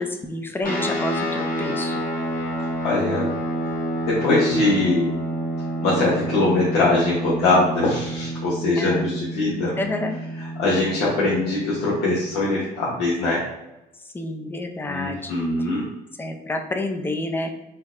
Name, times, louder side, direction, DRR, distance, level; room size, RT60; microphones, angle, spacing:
voice 1, 0.0-2.1 8.8-9.1 9.6-10.2 14.0-15.3 16.2-17.5, left 2 dB, 10° left, 5 dB, 0.4 m, -29 dB
sound 1, 0.6-12.4, right 1 dB, 55° left, 1.3 m, -29 dB
voice 2, 2.8-3.3 4.0-5.2 5.8-9.7 10.6-13.4 14.9-15.9, left 2 dB, 90° left, -7 dB, 0.9 m, -22 dB
4.4 x 2.1 x 2.4 m, 0.95 s
cardioid pair, 110°, 17 cm